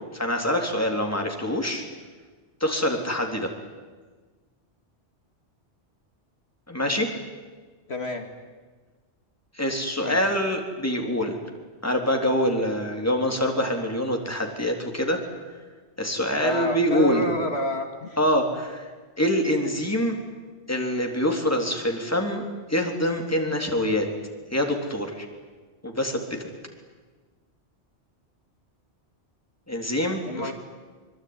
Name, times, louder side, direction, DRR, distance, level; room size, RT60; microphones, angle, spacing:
voice 1, 0.1-1.8 2.6-3.5 6.7-7.1 9.6-11.4 11.8-15.2 16.0-17.3 18.2-18.9 19.2-20.2 20.7-24.1 24.5-25.3 25.8-26.4 29.7-30.5, equal, 15° left, 2 dB, 3.6 m, -25 dB
voice 2, 7.9-8.3 10.0-10.2 16.4-18.2 30.3-30.5, left 1 dB, 65° left, 4 dB, 2.5 m, -29 dB
25.0 x 23.5 x 9.7 m, 1.4 s
omnidirectional pair, 1.2 m